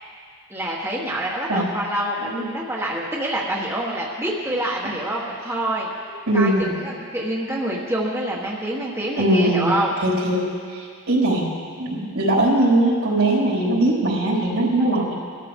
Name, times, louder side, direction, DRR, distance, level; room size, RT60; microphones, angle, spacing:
voice 1, 0.5-5.9 6.3-10.0, right 1 dB, 10° right, -5 dB, 1.2 m, -26 dB
voice 2, 6.3-6.7 9.2-9.7 10.0-10.5 11.1-11.5 11.8-15.1, right 1 dB, 70° right, -5 dB, 4.4 m, -20 dB
22.0 x 13.5 x 3.7 m, 2.1 s
head